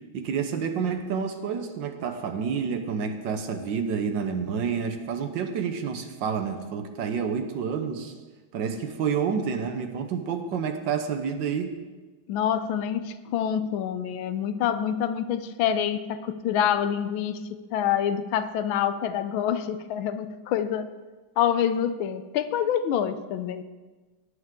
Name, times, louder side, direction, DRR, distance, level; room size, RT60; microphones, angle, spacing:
voice 1, 0.1-8.1 8.5-11.7, right 6 dB, 65° right, 7 dB, 1.5 m, -29 dB
voice 2, 12.3-20.9 21.4-23.6, left 9 dB, 80° left, 11 dB, 1.4 m, -26 dB
18.5 x 8.1 x 3.7 m, 1.3 s
omnidirectional pair, 2.3 m